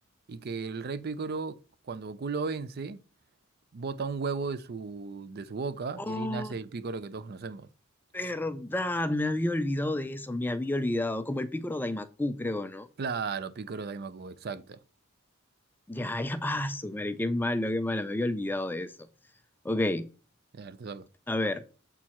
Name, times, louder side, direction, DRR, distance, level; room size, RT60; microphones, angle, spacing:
voice 1, 0.3-1.6 1.9-3.0 3.7-7.7 13.0-14.8 20.5-21.1, right 4 dB, 50° right, 0.4 m, -35 dB
voice 2, 6.0-6.5 8.1-12.9 15.9-18.9 19.6-20.0 21.3-21.6, left 1 dB, 10° left, 0.4 m, -30 dB
7.3 x 4.5 x 4.2 m
head